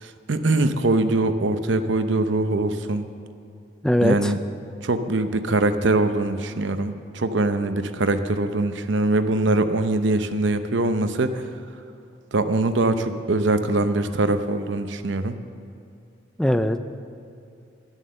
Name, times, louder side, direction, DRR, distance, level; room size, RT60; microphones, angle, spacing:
voice 1, 0.0-3.1 4.0-4.4 4.8-11.4 12.3-15.3, right 2 dB, 70° right, 9 dB, 0.7 m, -22 dB
voice 2, 3.8-4.3 16.4-16.8, left 1 dB, 5° left, 9 dB, 0.4 m, -20 dB
11.5 x 11.0 x 6.7 m, 2.5 s
head